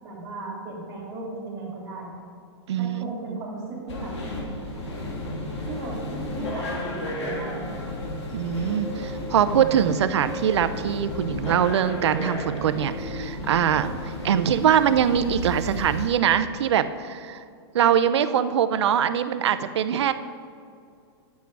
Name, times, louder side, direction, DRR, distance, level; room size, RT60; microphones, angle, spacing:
voice 1, 0.0-2.1 2.8-4.1 5.7-7.8, right 2 dB, 25° right, -4 dB, 2.8 m, -36 dB
voice 2, 2.7-3.4 8.3-17.4 17.7-20.1, right 9 dB, 75° right, 11 dB, 0.6 m, -23 dB
sound 1, 3.9-16.1, left 1 dB, 80° left, 2.4 m, -33 dB
10.5 x 8.4 x 4.7 m, 2.4 s
hypercardioid pair, 160°, 14 cm